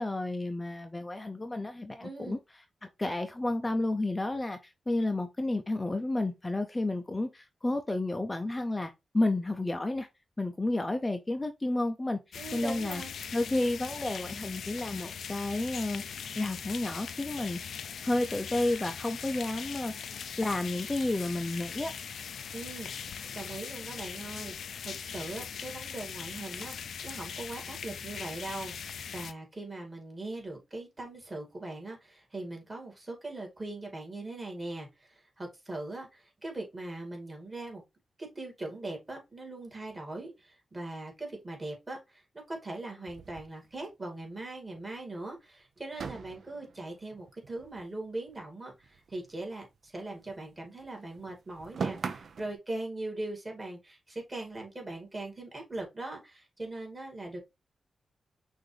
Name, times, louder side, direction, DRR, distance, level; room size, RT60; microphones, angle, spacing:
voice 1, 0.0-2.4 2.8-10.1 10.4-13.0 13.3-17.6 18.0-21.9, left 2 dB, 20° left, 0.5 m, -31 dB
voice 2, 2.0-2.4 12.3-13.2 22.5-37.8 38.2-57.4, right 2 dB, 25° right, 2.2 m, -40 dB
sound 1, 12.3-29.3, left 7 dB, 80° left, 0.4 m, -40 dB
sound 2, 43.1-44.4 44.7-44.8 45.1-45.3 45.9-48.4 48.7-50.5 50.8-52.5, right 5 dB, 65° right, 0.6 m, -41 dB
5.9 x 2.6 x 3.2 m
wide cardioid pair, 95°, 0 cm